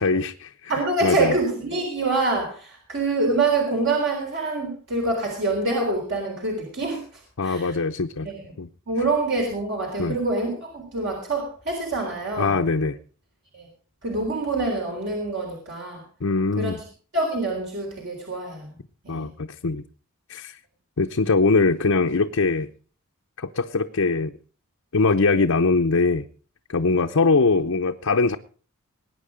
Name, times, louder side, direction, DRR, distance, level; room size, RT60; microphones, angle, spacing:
voice 1, 0.0-0.5 1.0-1.3 7.4-8.3 8.6-8.7 10.0-10.2 12.4-13.0 16.2-16.8 19.1-19.8 20.3-20.6 21.0-22.7 23.4-24.3 24.9-26.3 26.7-28.4, left 3 dB, 70° left, 3 dB, 0.7 m, -22 dB
voice 2, 0.7-7.0 7.4-7.8 8.2-8.5 8.9-12.6 13.5-13.7 14.0-16.0 16.6-16.7 17.1-18.7 19.0-19.3, right 2 dB, 60° right, 0 dB, 3.9 m, -25 dB
20.5 x 9.3 x 5.1 m, 0.41 s
head